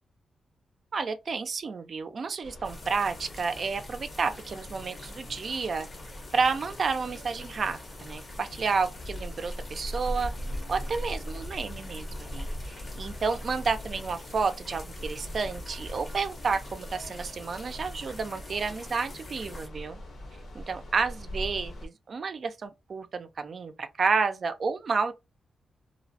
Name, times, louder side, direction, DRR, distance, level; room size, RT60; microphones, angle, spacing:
voice 1, 0.9-5.9 6.3-10.3 10.7-20.0 20.5-25.1, right 5 dB, 50° right, 0.3 m, -30 dB
sound 1, 2.4-21.9, equal, 70° left, 0.8 m, -40 dB
sound 2, 2.6-19.7, left 2 dB, 30° left, 0.6 m, -47 dB
2.6 x 2.0 x 2.7 m
cardioid pair, 110°, 0 cm